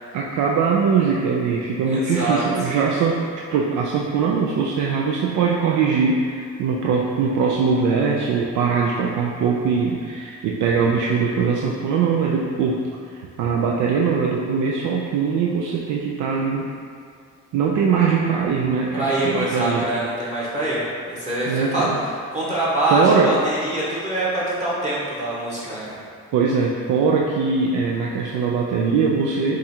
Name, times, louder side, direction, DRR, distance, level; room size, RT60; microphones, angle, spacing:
voice 1, 0.1-16.7 17.5-19.9 21.5-22.0 22.9-23.4 26.3-29.6, right 5 dB, 80° right, -1 dB, 0.5 m, -21 dB
voice 2, 1.9-2.4 18.9-21.8 22.3-26.0, right 1 dB, 25° right, -8 dB, 1.2 m, -24 dB
4.9 x 2.4 x 4.3 m, 2.2 s
cardioid pair, 90°, 30 cm